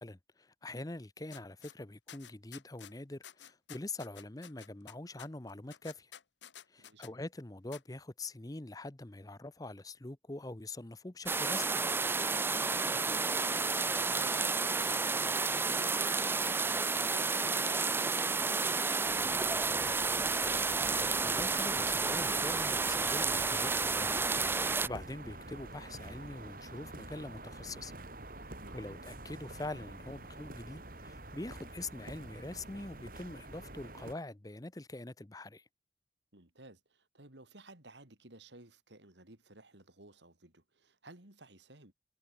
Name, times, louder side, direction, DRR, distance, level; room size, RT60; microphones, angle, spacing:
voice 1, 0.0-6.1 6.7-11.7 21.0-24.2 24.5-27.9 28.7-35.6, left 2 dB, 20° left, 0.8 m, -44 dB
sound 1, 1.3-1.7 2.1-2.9 3.2-7.1 7.7-7.8, left 10 dB, 85° left, 1.3 m, -51 dB
voice 2, 6.8-7.1 12.5-19.8 28.6-28.8 36.3-41.9, right 2 dB, 80° right, 4.1 m, -55 dB
sound 2, 11.3-24.9, right 4 dB, 10° right, 0.4 m, -31 dB
sound 3, 19.0-34.1, right 2 dB, 50° right, 4.7 m, -47 dB
head